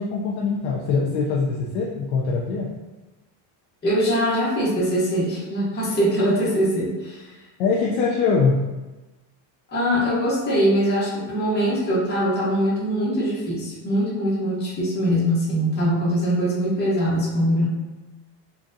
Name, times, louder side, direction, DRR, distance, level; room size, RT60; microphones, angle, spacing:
voice 1, 0.0-2.7 7.6-8.6, left 4 dB, 75° left, -3 dB, 0.6 m, -22 dB
voice 2, 3.8-7.3 9.7-17.6, equal, 20° left, -8 dB, 1.0 m, -22 dB
3.9 x 2.3 x 2.6 m, 1.1 s
cardioid pair, 140°, 49 cm